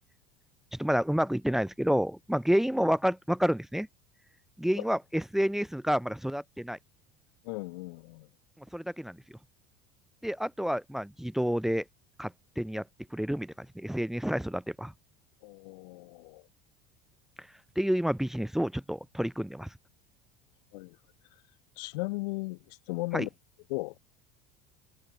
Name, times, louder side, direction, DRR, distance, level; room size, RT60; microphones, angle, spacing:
voice 1, 0.7-3.9 4.6-6.8 8.7-9.2 10.2-11.8 12.2-12.8 13.1-14.9 17.8-19.7 23.1-23.3, equal, ahead, 1.0 m, -29 dB
voice 2, 7.4-8.3 15.4-16.4 20.7-21.0 21.8-23.3 23.7-23.9, left 24 dB, 85° left, 1.3 m, -36 dB
cardioid pair, 170°, 21 cm